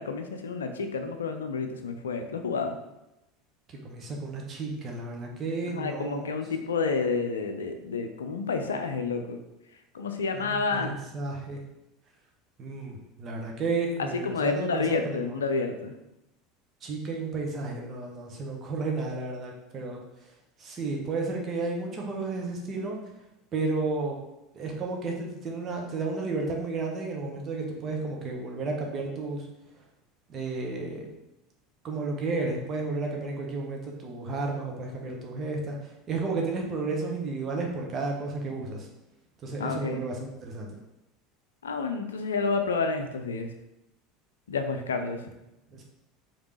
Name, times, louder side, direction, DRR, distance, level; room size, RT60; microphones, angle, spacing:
voice 1, 0.0-2.8 5.7-9.4 9.9-11.0 14.0-15.9 39.6-40.0 41.6-43.5 44.5-45.3, left 4 dB, 70° left, 6 dB, 0.4 m, -29 dB
voice 2, 3.7-6.3 10.3-11.6 12.6-15.4 16.8-20.0 20.6-23.0 23.5-24.2 24.5-29.5 30.3-31.1 31.8-38.9 39.4-40.7 45.7-45.8, right 3 dB, 35° right, 0 dB, 1.0 m, -32 dB
5.0 x 2.9 x 3.3 m, 0.91 s
figure-of-eight pair, 75°, 0 cm